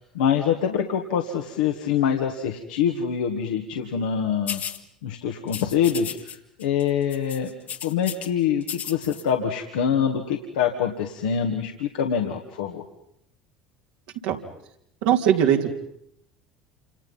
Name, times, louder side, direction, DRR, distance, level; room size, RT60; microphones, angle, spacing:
voice 1, 0.0-4.6 5.0-6.1 6.6-7.5 7.8-12.8, left 8 dB, 75° left, 2 dB, 1.9 m, -25 dB
sound 1, 4.5-4.8 5.5-6.4 6.6-6.8 7.1-8.3 8.6-9.2, left 8 dB, 45° left, 1.8 m, -34 dB
voice 2, 15.0-15.7, right 9 dB, 70° right, 2 dB, 3.2 m, -20 dB
28.5 x 27.0 x 5.7 m, 0.74 s
hypercardioid pair, 70°, 4 cm